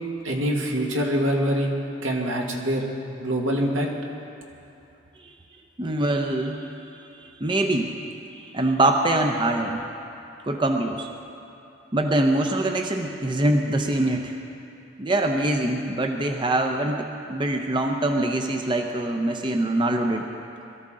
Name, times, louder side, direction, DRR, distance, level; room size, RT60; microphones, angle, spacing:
voice 1, 0.2-1.7 2.0-2.9 3.2-3.9, equal, 85° right, 0 dB, 1.8 m, -24 dB
voice 2, 5.8-7.9 8.3-9.8 10.4-11.1 11.9-14.4 15.0-20.3, right 1 dB, 25° right, 4 dB, 0.6 m, -24 dB
21.5 x 13.5 x 3.7 m, 2.7 s
head